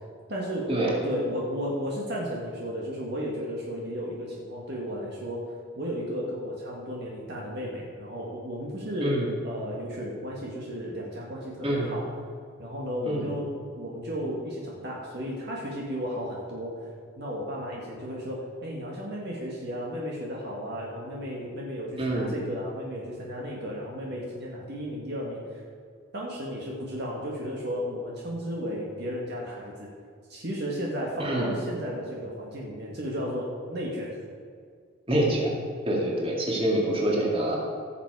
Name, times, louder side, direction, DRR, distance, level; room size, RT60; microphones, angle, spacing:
voice 1, 0.3-0.7 1.0-12.1 12.6-13.5 13.8-16.9 17.2-25.6 26.1-29.9 30.3-34.2, equal, 50° right, -3 dB, 1.7 m, -34 dB
voice 2, 9.0-9.3 11.6-11.9 13.0-13.3 22.0-22.3 31.2-31.5 35.1-35.5 35.9-37.6, right 1 dB, 25° right, -3 dB, 2.3 m, -26 dB
16.0 x 7.3 x 4.8 m, 2.1 s
head